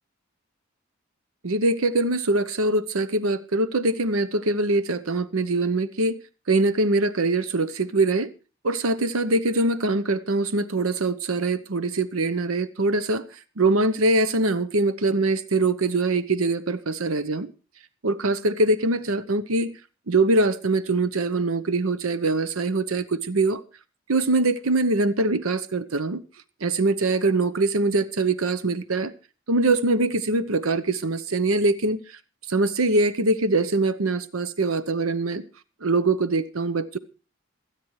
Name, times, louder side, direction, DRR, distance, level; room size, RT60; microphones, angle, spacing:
voice 1, 1.4-6.2 6.5-8.3 8.6-13.2 13.6-17.5 18.0-19.8 20.1-23.6 24.1-26.2 26.6-29.1 29.5-32.0 32.5-35.4 35.8-37.0, right 2 dB, 90° right, 0.9 m, -23 dB
27.0 x 9.3 x 3.2 m
head